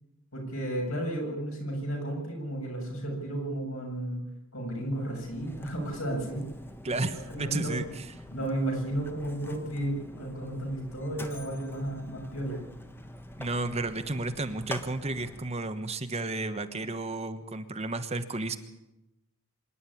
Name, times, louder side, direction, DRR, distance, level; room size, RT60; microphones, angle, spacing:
voice 1, 0.3-4.2 4.5-6.4 6.8-7.9 8.3-12.7, right 1 dB, 70° left, 1 dB, 7.2 m, -33 dB
Mechanisms, 4.9-15.6, left 1 dB, 10° left, 1.3 m, -45 dB
voice 2, 6.8-8.1 13.4-18.6, right 2 dB, 30° right, 9 dB, 1.2 m, -32 dB
25.5 x 11.5 x 9.9 m, 0.93 s
head